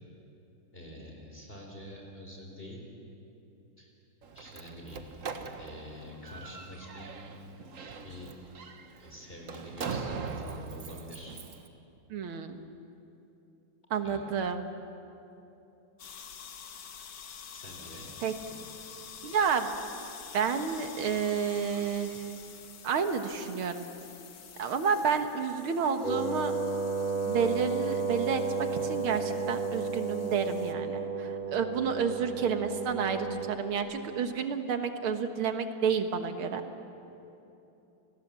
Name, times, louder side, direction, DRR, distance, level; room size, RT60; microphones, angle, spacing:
voice 1, 0.7-2.8 3.8-3.9 4.3-5.0 5.6-7.1 8.0-8.3 9.0-11.4 14.0-14.2 17.5-18.1, equal, 25° left, -1 dB, 4.1 m, -46 dB
Slam, 4.2-11.7, right 5 dB, 45° right, 1.3 m, -41 dB
voice 2, 12.1-12.6 13.9-14.6 18.2-18.3 19.2-19.7 20.3-22.3 22.8-23.9 24.6-26.5 27.3-36.6, right 6 dB, 75° right, 7 dB, 2.3 m, -30 dB
sound 1, 16.0-30.7, left 7 dB, 60° left, 1.8 m, -48 dB
Wind instrument woodwind instrument, 26.0-33.6, right 5 dB, 25° right, 2.9 m, -33 dB
29.5 x 20.5 x 7.6 m, 2.9 s
omnidirectional pair, 2.3 m